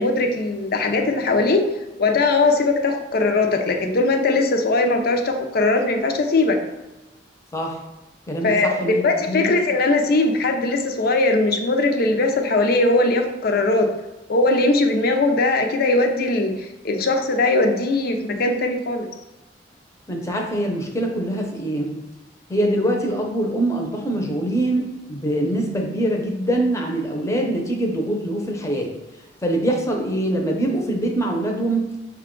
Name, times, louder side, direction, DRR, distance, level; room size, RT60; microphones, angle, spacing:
voice 1, 0.0-1.7 2.0-6.6 8.4-13.9 14.3-19.1, left 2 dB, 60° left, 4 dB, 0.6 m, -20 dB
voice 2, 8.3-9.5 20.1-21.9 22.5-28.9 29.4-31.9, right 1 dB, 15° left, 1 dB, 0.7 m, -23 dB
5.6 x 2.3 x 3.7 m, 1.1 s
head